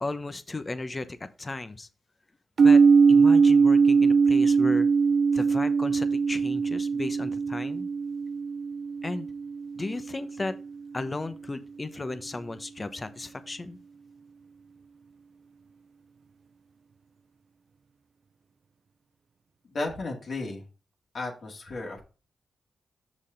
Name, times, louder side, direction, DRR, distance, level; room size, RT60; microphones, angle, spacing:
voice 1, 0.0-1.9 2.6-2.8 3.1-4.9 5.3-7.9 9.0-9.3 9.8-10.5 10.9-13.8, left 2 dB, 30° left, 11 dB, 0.9 m, -35 dB
sound 1, 2.6-10.4, right 5 dB, 60° right, 0.3 m, -21 dB
voice 2, 19.7-20.6 21.1-22.0, left 2 dB, 65° left, 0 dB, 2.0 m, -34 dB
6.3 x 5.6 x 3.8 m, 0.33 s
supercardioid pair, 50°, 0 cm